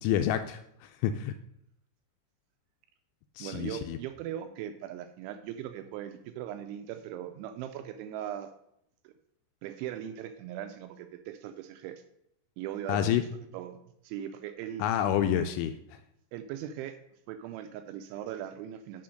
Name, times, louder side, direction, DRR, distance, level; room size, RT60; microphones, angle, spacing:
voice 1, 0.0-1.3 3.4-4.0 12.9-13.2 14.8-15.7, left 10 dB, 85° left, 7 dB, 2.7 m, -28 dB
voice 2, 3.4-8.5 9.0-9.1 9.6-12.0 12.6-13.3 13.5-13.8 14.0-14.8 16.3-17.0 17.3-19.0, right 10 dB, 85° right, 8 dB, 2.8 m, -39 dB
6.8 x 5.8 x 6.3 m, 0.77 s
omnidirectional pair, 5.7 m